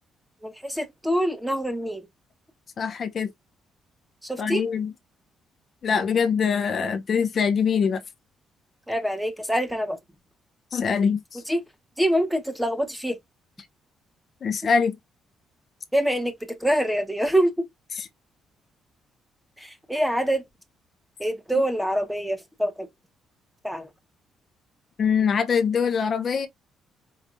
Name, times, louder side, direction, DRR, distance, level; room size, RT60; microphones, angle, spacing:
voice 1, 0.4-2.0 4.2-4.6 8.9-10.0 11.5-11.6 12.0-13.2 15.9-16.3 16.6-17.5 19.9-20.4 21.2-22.9 23.6-23.9, equal, 5° right, 1.1 m, -25 dB
voice 2, 2.8-3.3 4.4-4.9 5.8-8.0 10.7-11.4 14.4-15.0 17.9-18.1 25.0-26.5, left 6 dB, 50° left, 0.8 m, -23 dB
4.7 x 3.3 x 2.6 m
cardioid pair, 90°, 0 cm